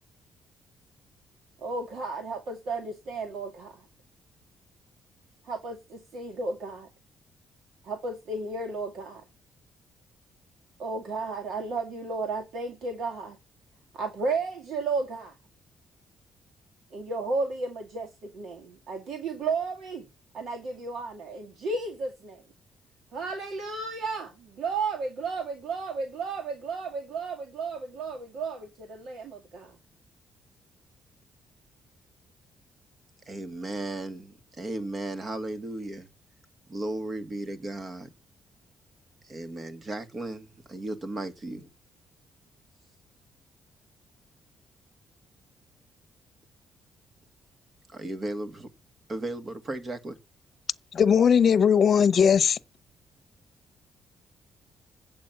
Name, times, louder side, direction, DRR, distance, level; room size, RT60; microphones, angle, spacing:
voice 1, 1.6-3.7 5.5-6.9 7.8-9.2 10.8-13.4 13.9-15.3 16.9-20.1 20.3-22.4 23.1-29.7, right 3 dB, 70° right, 2.1 m, -33 dB
voice 2, 33.2-36.1 36.7-38.1 39.2-41.7 47.9-48.7 49.1-50.2, right 2 dB, 35° right, 2.0 m, -35 dB
voice 3, 50.9-52.6, left 7 dB, 50° left, 0.8 m, -19 dB
8.5 x 7.6 x 5.9 m
cardioid pair, 90°, 0 cm